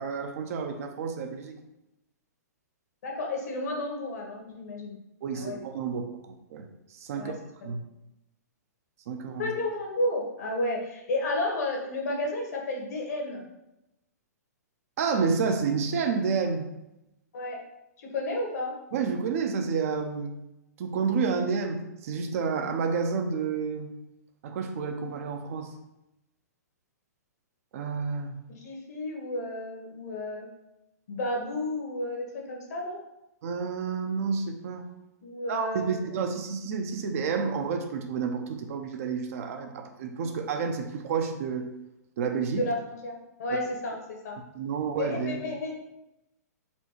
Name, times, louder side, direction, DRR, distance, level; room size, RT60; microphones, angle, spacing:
voice 1, 0.0-1.6 5.2-6.0 6.5-7.3 7.6-7.8 9.1-9.5 15.0-16.7 18.9-20.3 20.8-23.9 24.4-25.7 27.7-28.4 33.4-34.9 35.5-41.7 42.2-42.7 43.5-43.6 44.5-45.4, right 5 dB, 55° right, 5 dB, 0.7 m, -30 dB
voice 2, 3.0-5.0 5.3-5.6 7.1-7.3 7.6-7.7 9.4-13.5 17.3-17.6 18.0-18.7 28.5-30.5 31.1-33.0 35.2-36.0 42.5-44.4 45.0-45.8, left 1 dB, 65° left, 0 dB, 1.4 m, -32 dB
4.3 x 2.3 x 4.4 m, 0.90 s
hypercardioid pair, 125°, 9 cm